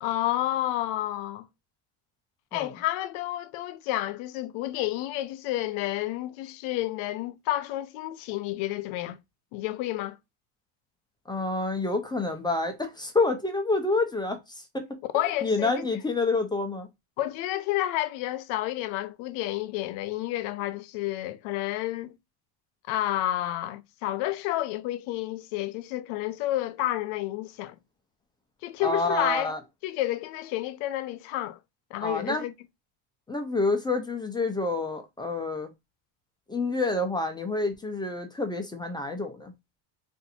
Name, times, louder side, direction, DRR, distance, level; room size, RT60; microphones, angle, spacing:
voice 1, 0.0-1.5 2.5-9.2 9.5-10.2 15.1-15.9 17.2-22.1 22.9-27.7 28.6-29.5 29.8-31.6 31.9-32.5, left 15 dB, 80° left, 0.6 m, -30 dB
voice 2, 11.3-15.0 15.4-16.9 28.8-29.6 32.0-32.4 33.3-35.7 36.5-39.5, left 3 dB, 10° left, 0.3 m, -28 dB
2.6 x 2.5 x 4.0 m
cardioid pair, 135°, 47 cm